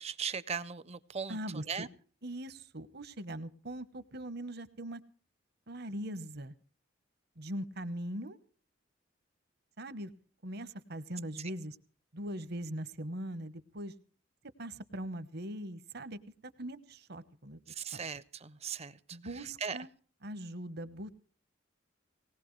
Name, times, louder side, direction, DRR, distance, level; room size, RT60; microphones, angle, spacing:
voice 1, 0.0-1.9 11.4-11.5 17.7-19.8, right 6 dB, 35° right, 17 dB, 0.6 m, -39 dB
voice 2, 1.3-1.6 2.2-5.0 5.7-6.5 7.4-8.4 9.8-10.1 10.4-11.8 12.1-13.9 14.6-16.2 16.6-17.6 17.9-18.0 19.1-19.9 20.2-21.1, right 1 dB, 60° right, 13 dB, 1.0 m, -41 dB
18.5 x 18.5 x 3.2 m, 0.42 s
head